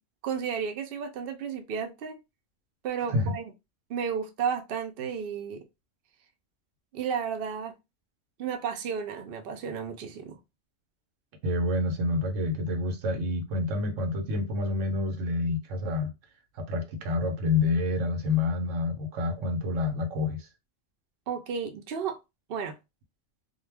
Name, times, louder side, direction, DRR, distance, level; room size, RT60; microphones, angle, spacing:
voice 1, 0.2-2.2 2.8-3.4 3.9-5.6 6.9-7.7 8.4-10.4 21.3-22.2 22.5-22.8, right 7 dB, 60° right, 0.7 m, -32 dB
voice 2, 11.4-16.1 16.6-20.5, left 3 dB, 90° right, 1.0 m, -28 dB
2.3 x 2.2 x 3.3 m
omnidirectional pair, 1.2 m